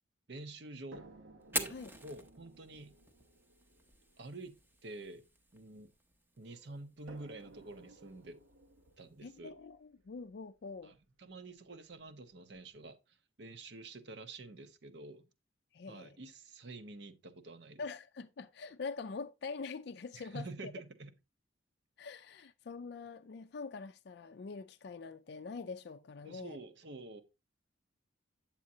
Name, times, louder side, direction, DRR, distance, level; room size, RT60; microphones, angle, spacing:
voice 1, 0.3-1.1 1.5-3.0 4.2-5.2 5.5-5.9 6.4-8.4 9.0-9.5 10.8-15.3 15.9-17.8 20.1-21.1 26.2-27.2, right 2 dB, 60° right, 0.8 m, -48 dB
sound 1, 0.9-6.1 7.1-11.0 12.0-12.1 12.5-12.6, right 2 dB, 85° right, 1.2 m, -59 dB
Fire, 1.4-9.4, right 1 dB, 10° right, 0.7 m, -46 dB
voice 2, 9.2-11.0 15.7-16.1 17.8-20.4 22.0-26.6, left 4 dB, 55° left, 0.4 m, -44 dB
8.6 x 7.3 x 2.7 m
head